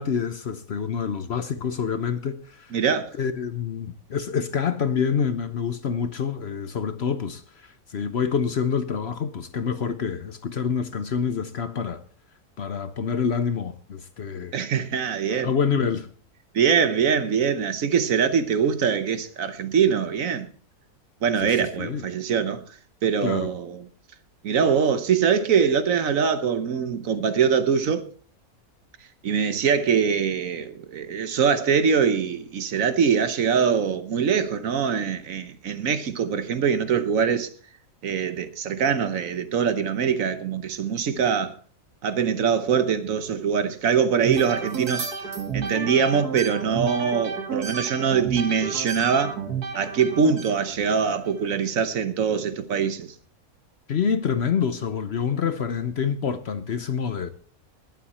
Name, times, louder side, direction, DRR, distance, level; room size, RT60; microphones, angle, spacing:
voice 1, 0.0-2.7 3.2-12.0 12.6-14.5 15.3-16.1 21.4-22.0 23.2-23.5 53.9-57.3, left 6 dB, 50° left, 0.9 m, -27 dB
voice 2, 2.7-3.1 14.5-15.5 16.5-20.5 21.2-22.6 23.0-23.8 24.4-28.1 29.2-37.5 38.0-41.5 42.0-45.1 45.5-49.4 49.7-53.1, right 6 dB, 65° right, 1.3 m, -23 dB
sound 1, 44.2-51.6, right 5 dB, 90° right, 2.1 m, -32 dB
20.0 x 7.9 x 4.2 m
omnidirectional pair, 1.6 m